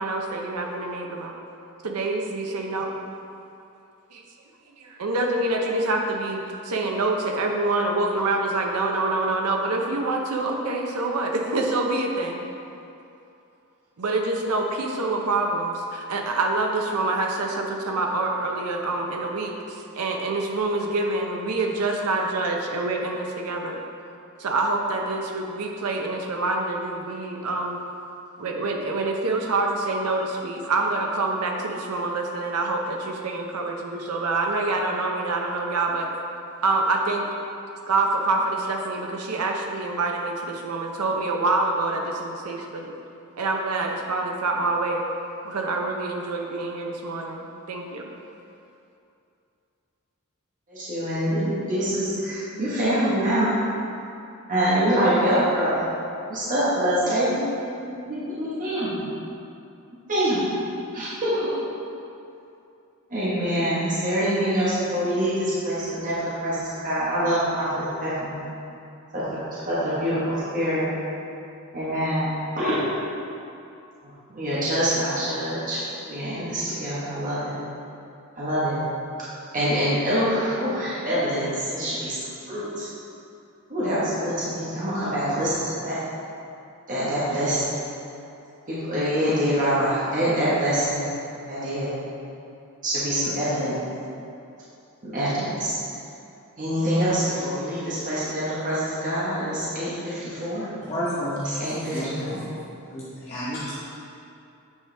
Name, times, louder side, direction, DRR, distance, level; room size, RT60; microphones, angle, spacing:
voice 1, 0.0-1.3 1.8-3.0 4.1-4.2 4.8-12.4 14.0-23.8 24.4-27.8 28.4-36.1 36.6-37.3 37.9-42.9 43.4-45.0 45.4-48.1, right 2 dB, 90° right, 2 dB, 0.7 m, -26 dB
voice 2, 50.7-53.5 54.5-55.8 56.3-57.4 57.8-59.0 60.1-60.4 60.9-61.5 63.1-68.4 69.1-69.2 69.5-70.9 71.7-72.8 74.3-75.8 76.1-77.5 78.4-78.8 79.5-82.2 82.5-82.9 83.7-86.0 86.9-87.8 88.7-91.1 91.5-91.9 92.8-93.7 95.0-95.8 96.6-100.7 101.4-102.4, equal, 35° right, -10 dB, 1.3 m, -25 dB
voice 3, 100.9-101.5 101.9-102.4 102.8-103.7, equal, 30° left, -11 dB, 1.0 m, -30 dB
8.4 x 4.8 x 3.3 m, 2.7 s
head